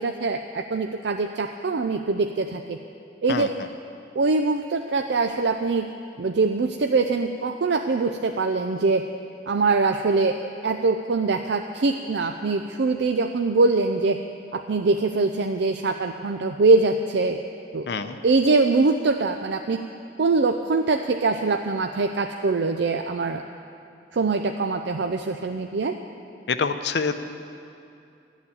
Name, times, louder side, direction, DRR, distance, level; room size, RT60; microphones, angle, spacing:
voice 1, 0.0-2.8 3.2-3.5 4.1-5.9 6.2-9.0 9.5-14.2 14.5-17.4 17.7-17.9 18.2-19.8 20.2-23.4 24.1-26.0, right 3 dB, 70° right, 6 dB, 0.5 m, -23 dB
voice 2, 17.9-18.2 26.5-27.2, left 5 dB, 70° left, 9 dB, 0.6 m, -26 dB
13.0 x 7.2 x 9.7 m, 2.5 s
head